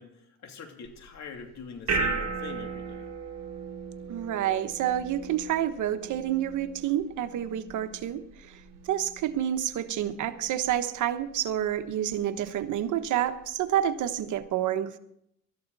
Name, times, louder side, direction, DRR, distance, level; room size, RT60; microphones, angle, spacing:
voice 1, 0.0-3.1, left 6 dB, 65° left, 3 dB, 2.9 m, -43 dB
sound 1, 0.9-14.4, right 4 dB, 60° right, 2.3 m, -38 dB
voice 2, 4.1-8.5 8.9-15.0, right 11 dB, 80° right, 9 dB, 1.2 m, -29 dB
19.0 x 13.0 x 4.1 m, 0.75 s
cardioid pair, 90°, 30 cm